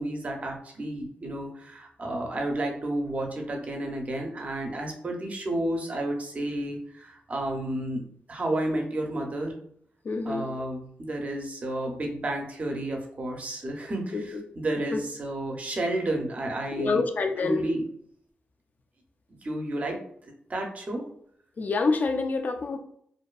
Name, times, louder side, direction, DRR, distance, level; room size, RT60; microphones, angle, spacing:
voice 1, 0.0-8.0 8.3-9.6 10.3-17.0 17.4-17.8 19.4-21.1, right 1 dB, 40° right, 2 dB, 0.6 m, -31 dB
voice 2, 10.0-10.5 14.1-14.4 14.9-15.0 16.8-17.7 21.6-22.8, left 4 dB, 50° left, 7 dB, 0.3 m, -27 dB
2.5 x 2.2 x 2.3 m, 0.67 s
wide cardioid pair, 100°, 4 cm